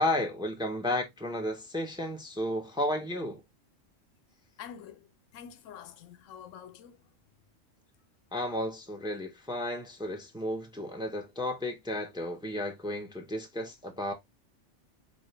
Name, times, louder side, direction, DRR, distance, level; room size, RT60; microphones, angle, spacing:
voice 1, 0.0-3.4 8.3-14.1, left 1 dB, 5° right, 0.6 m, -33 dB
voice 2, 4.6-5.0 5.3-7.0, left 8 dB, 85° left, 1.0 m, -46 dB
4.0 x 2.9 x 3.1 m
omnidirectional pair, 1.3 m